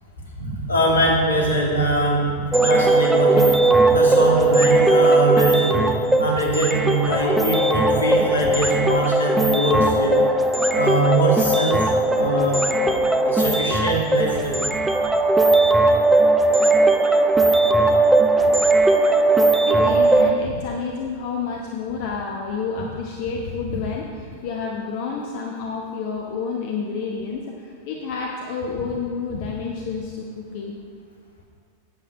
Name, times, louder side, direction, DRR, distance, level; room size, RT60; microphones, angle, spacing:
voice 1, 0.4-10.2 10.7-11.9 12.1-12.6 13.2-14.6, right 1 dB, 75° left, -2 dB, 2.3 m, -22 dB
sound 1, 2.5-20.3, right 2 dB, 5° right, 0.6 m, -18 dB
voice 2, 19.4-30.7, left 5 dB, 50° left, 0 dB, 1.0 m, -30 dB
9.0 x 8.1 x 5.4 m, 2.3 s
figure-of-eight pair, 90°, 0 cm